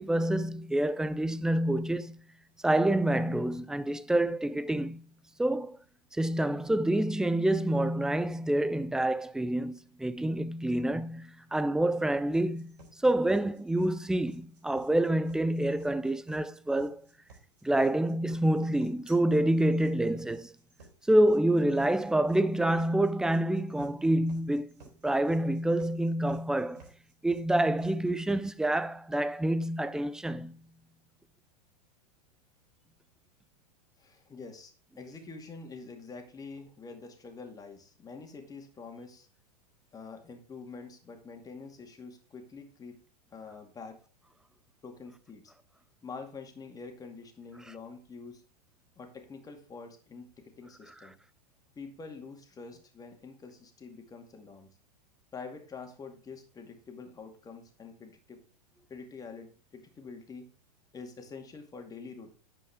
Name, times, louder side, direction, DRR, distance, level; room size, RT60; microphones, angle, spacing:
voice 1, 0.0-2.2 2.6-5.0 5.4-5.8 6.1-12.7 13.0-17.0 17.6-20.5 21.1-24.7 25.0-26.8 27.2-30.5, right 1 dB, 5° right, 0.4 m, -27 dB
sound 1, 12.3-28.3, right 3 dB, 80° right, 3.7 m, -56 dB
voice 2, 34.0-39.3 39.9-43.0 43.3-44.0 44.8-45.5 46.0-48.4 49.0-50.3 50.6-51.2 51.8-54.7 55.3-58.4 58.9-60.5 60.9-62.3, left 4 dB, 15° left, 2.2 m, -46 dB
9.5 x 7.7 x 3.5 m
hypercardioid pair, 105°, 21 cm